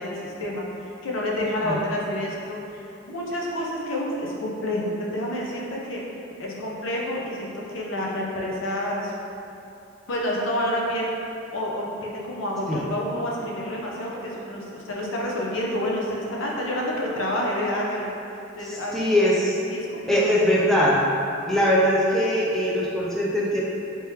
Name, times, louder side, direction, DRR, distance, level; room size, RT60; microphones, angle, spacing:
voice 1, 0.0-6.0 6.4-9.1 10.1-11.1 11.5-18.1 18.5-19.0 19.2-19.3 19.7-20.4, left 1 dB, 85° left, -3 dB, 0.6 m, -29 dB
voice 2, 18.6-19.6 20.1-20.9 21.5-23.6, equal, ahead, -6 dB, 0.4 m, -21 dB
3.4 x 3.4 x 2.8 m, 2.8 s
head